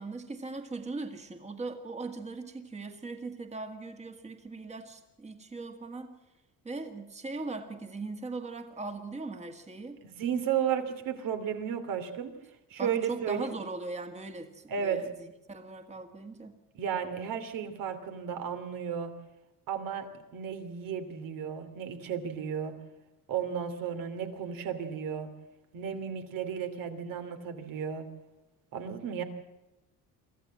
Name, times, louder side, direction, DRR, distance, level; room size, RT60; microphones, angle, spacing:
voice 1, 0.0-6.1 6.6-10.0 12.8-16.6, right 3 dB, 20° right, 6 dB, 2.0 m, -39 dB
voice 2, 10.0-12.3 12.7-13.5 14.7-15.0 16.7-19.1 19.7-20.1 20.3-22.7 23.3-25.3 25.7-28.0 28.7-29.2, right 8 dB, 65° right, 7 dB, 2.9 m, -33 dB
24.5 x 15.0 x 7.6 m, 0.99 s
cardioid pair, 140°, 35 cm